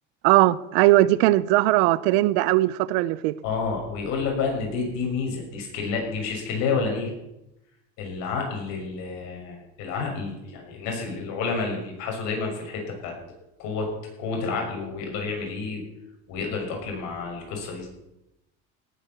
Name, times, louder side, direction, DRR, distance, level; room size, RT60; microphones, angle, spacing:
voice 1, 0.2-3.3, right 17 dB, 80° right, 19 dB, 0.8 m, -19 dB
voice 2, 3.4-7.1 8.0-13.1 13.6-13.9 14.2-15.8 16.3-17.9, left 4 dB, 65° left, 2 dB, 6.1 m, -29 dB
18.0 x 8.7 x 6.9 m, 0.90 s
cardioid pair, 135°, 30 cm